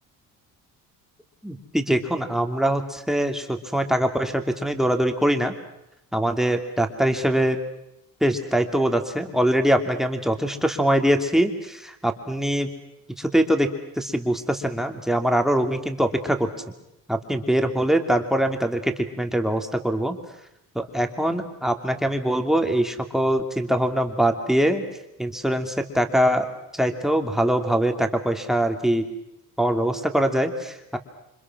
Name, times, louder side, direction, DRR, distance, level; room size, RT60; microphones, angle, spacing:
voice 1, 1.4-5.5 6.1-7.6 8.2-12.7 13.2-13.7 14.0-16.5 17.1-20.2 20.7-24.8 25.2-26.5 26.7-29.0 29.6-31.0, right 1 dB, ahead, 5 dB, 2.8 m, -23 dB
28.5 x 25.5 x 6.2 m, 0.86 s
cardioid pair, 110°, 34 cm